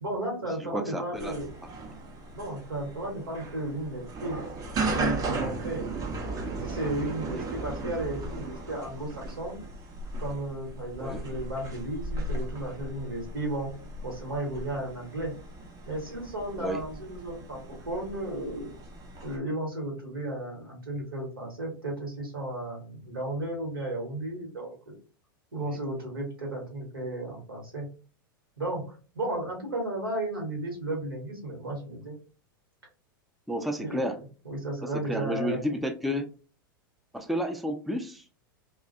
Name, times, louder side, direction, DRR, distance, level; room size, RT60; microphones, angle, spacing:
voice 1, 0.0-1.5 2.3-4.4 4.9-5.9 6.6-9.6 10.2-13.7 14.0-15.3 15.9-18.7 19.2-24.8 25.5-27.9 28.6-32.1 33.8-34.0 34.4-35.8, right 1 dB, 90° right, 0 dB, 1.3 m, -34 dB
voice 2, 0.6-1.3 7.2-7.4 11.0-11.2 16.6-16.8 25.5-25.6 33.5-34.2 35.0-36.3 37.1-38.2, equal, ahead, 5 dB, 0.3 m, -31 dB
sound 1, 1.2-19.4, right 2 dB, 30° right, 0.6 m, -36 dB
2.4 x 2.3 x 2.5 m, 0.36 s
hypercardioid pair, 100°, 12 cm